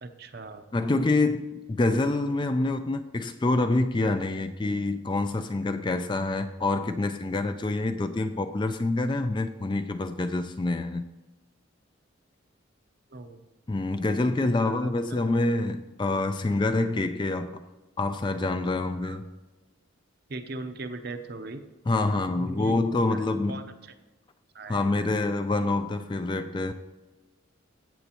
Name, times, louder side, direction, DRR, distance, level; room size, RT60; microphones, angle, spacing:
voice 1, 0.0-0.6 13.1-13.4 14.3-14.9 19.0-19.2 20.3-21.6 22.0-23.0 23.5-23.6 24.5-24.9, right 2 dB, 50° right, 0.7 m, -39 dB
voice 2, 0.7-11.1 13.7-17.6 18.0-19.3 21.9-23.6 24.7-26.7, left 2 dB, 20° left, 0.3 m, -26 dB
15.0 x 7.9 x 3.0 m
head